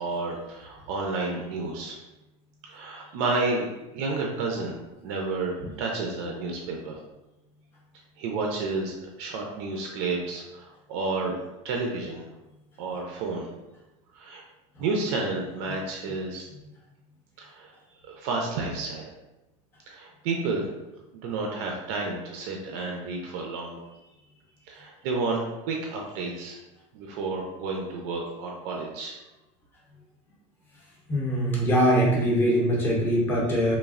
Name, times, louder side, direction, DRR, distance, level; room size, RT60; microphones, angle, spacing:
voice 1, 0.0-2.0 2.6-3.7 3.9-7.0 8.2-11.3 11.6-12.2 12.8-13.5 14.1-14.4 14.8-16.5 17.4-17.7 18.0-19.1 19.9-20.7 21.2-23.8 24.7-26.6 26.9-29.2, right 3 dB, 60° right, 0 dB, 0.4 m, -31 dB
voice 2, 31.1-33.8, equal, 15° left, -4 dB, 0.5 m, -22 dB
3.1 x 2.0 x 2.4 m, 0.99 s
supercardioid pair, 165°, 16 cm